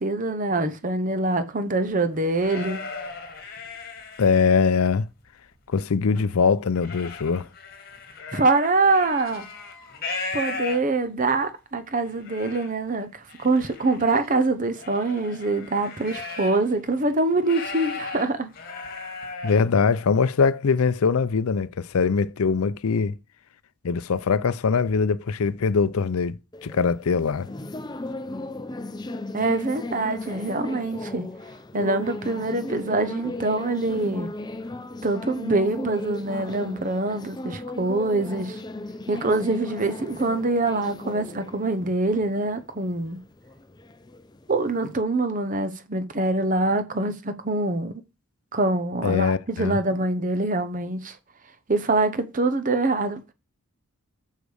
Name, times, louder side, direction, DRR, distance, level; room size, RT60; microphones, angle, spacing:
voice 1, 0.0-2.8 8.3-9.5 10.3-18.5 29.3-31.3 31.7-34.3 35.0-38.6 39.1-43.2 44.5-48.0 48.5-51.2 51.7-53.2, right 2 dB, 35° right, 0.8 m, -24 dB
sound 1, 1.9-4.7 5.2-5.9 6.3-11.2 11.7-11.8 12.0-12.7 13.3-16.7 17.0-19.6, left 3 dB, 45° left, 1.6 m, -37 dB
voice 2, 4.2-5.1 5.7-7.5 19.4-23.1 23.8-27.5 49.0-49.8, left 5 dB, 80° left, 0.5 m, -22 dB
sound 2, 26.5-44.9, left 2 dB, 20° left, 0.5 m, -36 dB
6.6 x 5.1 x 6.3 m
head